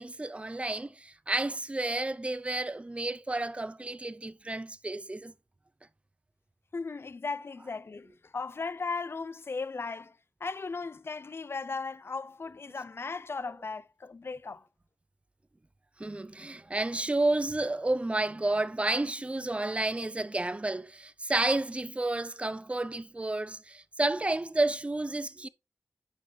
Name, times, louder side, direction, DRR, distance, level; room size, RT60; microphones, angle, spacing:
voice 1, 0.0-5.3 16.0-25.5, right 2 dB, 20° right, 0.5 m, -31 dB
voice 2, 6.7-14.7, left 4 dB, 45° left, 0.4 m, -37 dB
8.5 x 5.6 x 3.1 m
cardioid pair, 45°, 6 cm